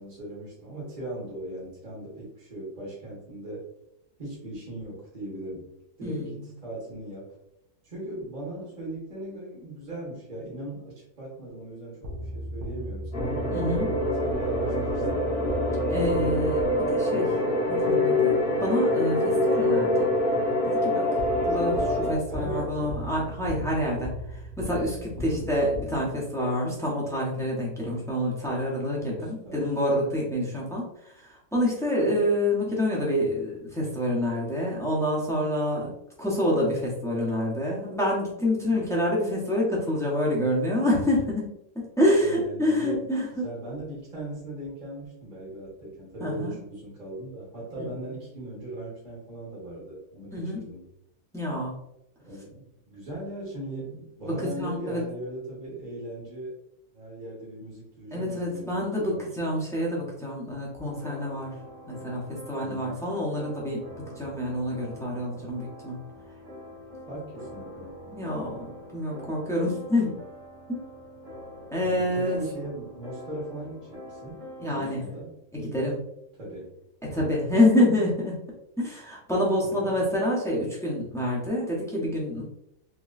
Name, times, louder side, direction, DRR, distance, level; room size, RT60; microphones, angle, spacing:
voice 1, 0.0-3.6 4.2-5.7 6.0-7.3 7.8-13.5 14.2-15.3 22.3-23.1 25.2-25.6 29.0-29.7 38.7-38.8 42.2-43.0 43.3-50.9 52.2-56.6 56.9-59.4 62.6-63.0 65.3-65.5 67.1-68.0 71.8-75.4 76.4-76.7 79.6-80.2, right 1 dB, 35° right, -6 dB, 1.2 m, -38 dB
voice 2, 6.0-6.5 13.5-13.9 15.9-17.3 17.7-20.1 20.6-21.0 21.4-35.9 36.2-41.4 41.7-43.4 46.2-46.6 47.8-47.9 50.3-50.6 51.3-51.8 54.2-55.0 58.1-61.5 61.9-63.8 64.2-66.0 68.1-70.1 70.7-70.8 71.7-72.4 74.6-75.0 75.5-76.0 77.0-78.4 78.8-82.4, left 1 dB, 5° left, -4 dB, 0.6 m, -27 dB
sound 1, 12.0-17.1 21.2-26.4, equal, 85° right, 1.3 m, -37 dB
sound 2, 13.1-22.1, left 1 dB, 40° left, 1.0 m, -25 dB
sound 3, 60.8-74.9, equal, 60° right, 1.4 m, -45 dB
3.7 x 3.0 x 2.5 m, 0.80 s
omnidirectional pair, 1.5 m